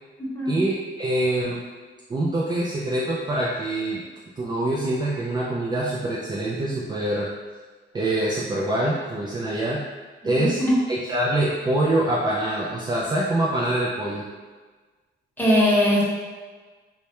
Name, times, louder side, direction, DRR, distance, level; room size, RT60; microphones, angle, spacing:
voice 1, 0.5-1.6 2.1-4.0 4.4-7.3 7.9-9.8 10.2-10.6 10.9-14.3, right 1 dB, 20° right, -5 dB, 0.3 m, -25 dB
voice 2, 10.4-10.7 15.4-16.0, left 1 dB, 10° left, -7 dB, 0.9 m, -20 dB
2.1 x 2.1 x 2.9 m, 1.4 s
cardioid pair, 90°, 20 cm